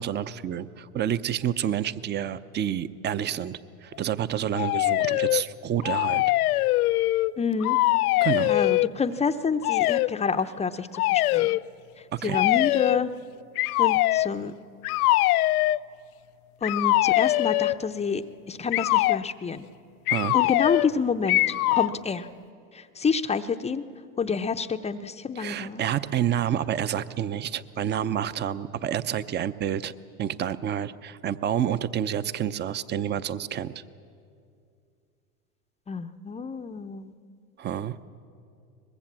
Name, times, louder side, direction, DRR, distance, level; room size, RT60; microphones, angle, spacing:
voice 1, 0.0-6.2 8.2-8.6 12.1-12.4 20.1-20.4 25.4-29.9 30.2-33.8 37.6-38.0, right 10 dB, 25° right, 15 dB, 0.6 m, -29 dB
sound 1, 4.5-5.4 5.8-7.3 7.6-8.9 9.6-10.1 10.9-11.6 12.3-13.0 13.6-14.3 14.8-15.8 16.6-17.8 18.7-19.2 20.1-20.9 21.3-21.9, left 18 dB, 80° left, 0.5 m, -22 dB
voice 2, 7.4-7.8 8.2-11.6 12.2-13.1 13.8-14.5 16.6-19.7 20.3-22.3 22.7-23.8 24.2-25.8 35.9-37.1, left 5 dB, 15° left, 9 dB, 0.6 m, -28 dB
23.0 x 21.0 x 7.4 m, 2.4 s
hypercardioid pair, 100°, 44 cm